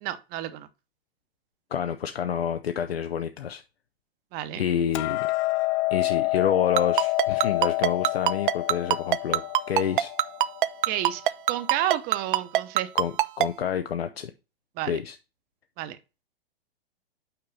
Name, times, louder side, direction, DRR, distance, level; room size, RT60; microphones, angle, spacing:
voice 1, 0.0-0.7 4.3-4.6 10.9-11.2 11.5-12.9 14.8-15.0 15.8-16.0, right 13 dB, 30° right, 0.8 m, -30 dB
voice 2, 1.7-3.6 4.6-5.3 5.9-10.1 12.9-14.3 14.8-15.2, left 8 dB, 75° left, 0.7 m, -28 dB
Hammer, 4.9-11.2, left 22 dB, 30° left, 0.5 m, -28 dB
Ringtone, 6.8-13.5, right 13 dB, 55° right, 0.5 m, -21 dB
5.9 x 4.7 x 5.4 m
figure-of-eight pair, 110°, 31 cm